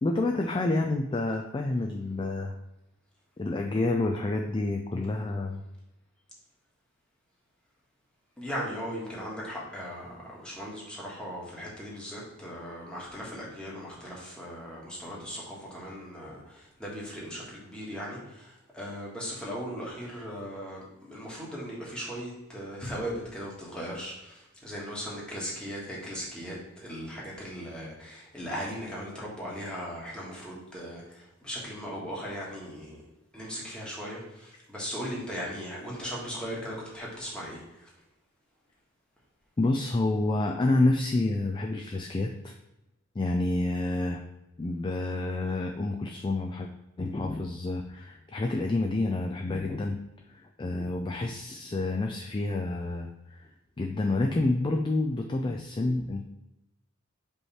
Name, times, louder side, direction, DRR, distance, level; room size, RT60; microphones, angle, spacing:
voice 1, 0.0-2.5 3.4-5.6 39.6-42.5 43.2-44.2 44.6-46.7 47.0-50.0 50.3-53.4 53.8-56.3, left 2 dB, 20° left, 2 dB, 0.3 m, -28 dB
voice 2, 8.4-16.4 16.8-18.5 18.7-31.0 31.4-33.0 33.3-37.6, equal, 5° left, -5 dB, 1.5 m, -38 dB
5.3 x 3.2 x 5.6 m, 0.95 s
head